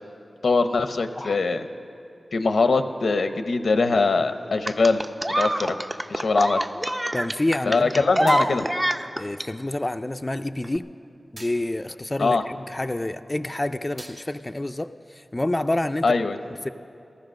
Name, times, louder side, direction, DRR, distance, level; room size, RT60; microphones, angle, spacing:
voice 1, 0.4-1.6 2.3-5.0 5.4-5.8 6.1-6.6 7.7-8.6 12.2-12.4 16.0-16.4, left 3 dB, 90° left, 9 dB, 0.7 m, -22 dB
sound 1, 4.7-9.5 10.6-10.8, right 1 dB, 20° right, 0.5 m, -25 dB
voice 2, 7.1-8.5 9.2-10.9 11.3-16.2 16.6-16.7, left 1 dB, 25° left, 8 dB, 0.4 m, -28 dB
sound 2, 8.3-8.9 11.4-11.9 14.0-14.6, right 2 dB, 75° right, 2.2 m, -45 dB
14.5 x 14.5 x 6.3 m, 2.7 s
wide cardioid pair, 70°, 0 cm